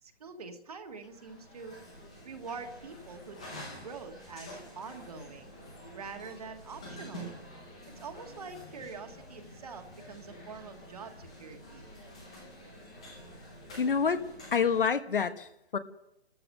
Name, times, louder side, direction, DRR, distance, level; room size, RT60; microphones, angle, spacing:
voice 1, 0.0-1.8 2.2-5.5 5.9-7.3 8.0-11.9, right 5 dB, 35° right, 5 dB, 1.7 m, -45 dB
sound 1, 1.0-14.9, equal, 5° left, 0.7 m, -48 dB
voice 2, 13.8-14.2 14.5-15.8, left 6 dB, 55° left, 10 dB, 1.4 m, -27 dB
29.0 x 14.0 x 6.5 m, 0.85 s
hypercardioid pair, 175°, 32 cm